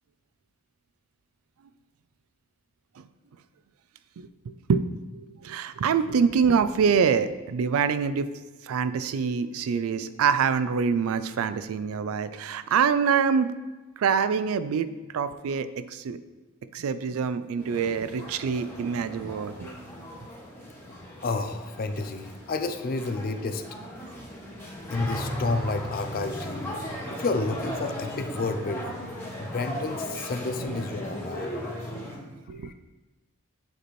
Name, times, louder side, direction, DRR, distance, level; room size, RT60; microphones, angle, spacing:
voice 1, 5.1-8.3 8.6-13.5 14.0-14.9 15.1-16.2 16.7-19.7 30.7-30.8 31.0-31.2 32.5-32.7, right 6 dB, 85° right, 13 dB, 0.4 m, -25 dB
sound 1, 17.6-32.2, equal, 10° left, 1.7 m, -37 dB
voice 2, 21.2-23.6 24.9-26.8 27.2-29.0 29.4-31.6 32.6-32.7, left 3 dB, 45° left, 7 dB, 0.4 m, -31 dB
7.9 x 4.2 x 3.1 m, 1.2 s
head